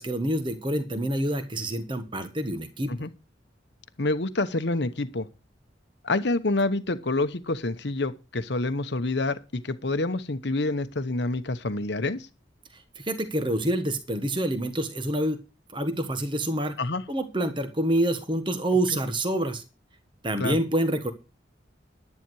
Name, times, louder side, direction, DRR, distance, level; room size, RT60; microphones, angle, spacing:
voice 1, 0.0-2.9 12.7-15.4 15.7-16.8 17.1-19.6 20.2-21.1, right 1 dB, 25° right, 8 dB, 1.3 m, -27 dB
voice 2, 4.0-5.3 6.0-12.3 16.8-17.0 20.4-20.6, left 2 dB, 60° left, 11 dB, 1.0 m, -27 dB
11.0 x 10.5 x 4.7 m, 0.29 s
head